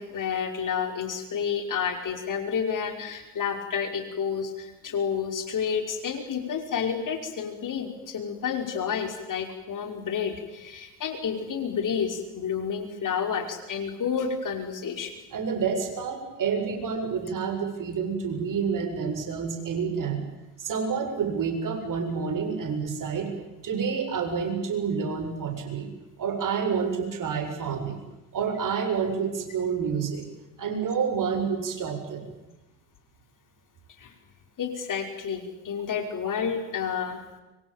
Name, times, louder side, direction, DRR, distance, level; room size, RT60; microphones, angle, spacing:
voice 1, 0.0-15.1 34.0-34.1 34.6-37.2, left 7 dB, 40° left, 6 dB, 5.5 m, -30 dB
voice 2, 15.3-20.3 20.6-23.3 23.6-25.9 26.2-28.0 28.3-30.2 30.6-32.3, right 6 dB, 40° right, 5 dB, 7.6 m, -28 dB
25.0 x 25.0 x 9.1 m, 1.0 s
hypercardioid pair, 65°, 46 cm